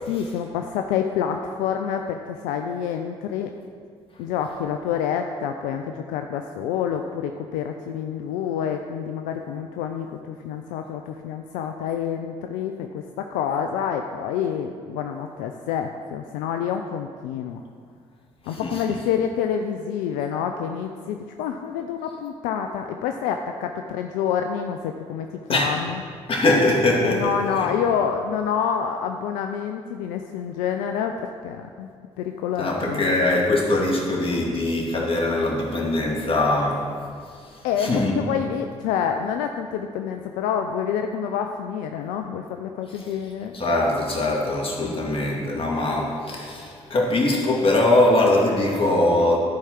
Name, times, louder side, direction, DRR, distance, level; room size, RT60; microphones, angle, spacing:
voice 1, 0.1-3.5 4.2-17.6 18.5-26.0 27.0-31.2 31.4-31.9 32.2-33.2 37.6-43.5, left 8 dB, 80° left, 5 dB, 0.4 m, -27 dB
voice 2, 18.5-18.8 25.5-25.7 26.3-27.8 32.6-36.8 37.8-38.2 43.5-49.4, left 2 dB, 45° left, -1 dB, 2.4 m, -22 dB
11.5 x 4.8 x 5.8 m, 2.1 s
hypercardioid pair, 50°, 13 cm